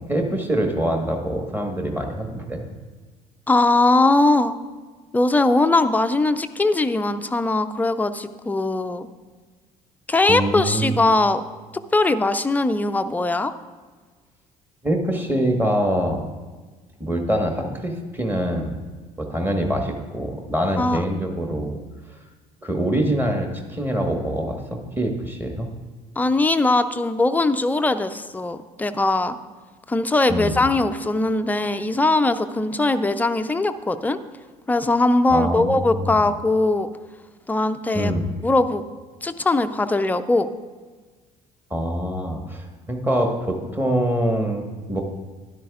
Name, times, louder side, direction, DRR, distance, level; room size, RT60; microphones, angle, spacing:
voice 1, 0.0-2.7 10.3-11.0 14.8-16.2 17.0-18.8 19.2-21.8 22.6-25.7 30.3-30.6 35.3-36.2 37.9-38.3 41.7-45.0, right 1 dB, 10° right, 3 dB, 1.4 m, -24 dB
voice 2, 3.5-4.6 5.1-9.1 10.1-11.4 11.9-13.5 20.8-21.0 26.2-29.4 29.9-34.2 34.7-36.9 37.5-38.1 38.4-38.8 39.2-40.5, left 2 dB, 10° left, 9 dB, 0.4 m, -20 dB
12.5 x 10.5 x 2.4 m, 1.4 s
figure-of-eight pair, 55°, 21 cm